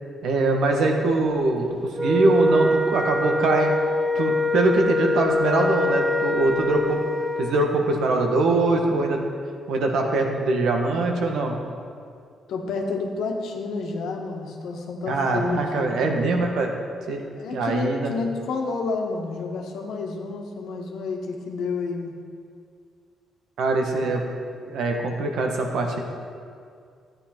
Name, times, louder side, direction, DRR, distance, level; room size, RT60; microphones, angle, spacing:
voice 1, 0.2-3.7 4.1-7.0 7.4-9.2 9.7-11.6 15.1-16.7 17.1-17.2 17.5-18.1 23.6-24.2 24.7-26.0, right 2 dB, 75° right, 2 dB, 1.4 m, -23 dB
Wind instrument woodwind instrument, 1.9-7.6, left 1 dB, 10° right, 0.9 m, -24 dB
voice 2, 12.5-16.1 17.4-22.1, left 3 dB, 80° left, 2 dB, 1.3 m, -30 dB
12.0 x 8.7 x 4.4 m, 2.3 s
cardioid pair, 90°, 0 cm